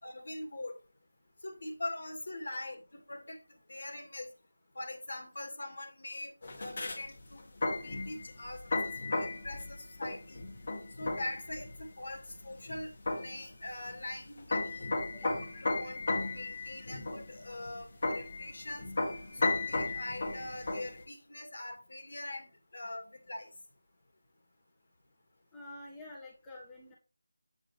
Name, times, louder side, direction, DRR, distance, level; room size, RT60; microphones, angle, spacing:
voice 1, 0.0-0.8 1.4-4.3 4.7-7.5 7.8-10.4 11.0-14.9 15.5-18.9 19.3-23.5, left 1 dB, 60° left, 2.4 m, -43 dB
sound 1, 6.4-21.0, left 3 dB, 40° left, 1.9 m, -35 dB
voice 2, 25.5-26.9, left 2 dB, 5° left, 1.7 m, -47 dB
8.3 x 8.1 x 3.4 m
figure-of-eight pair, 170°, 0 cm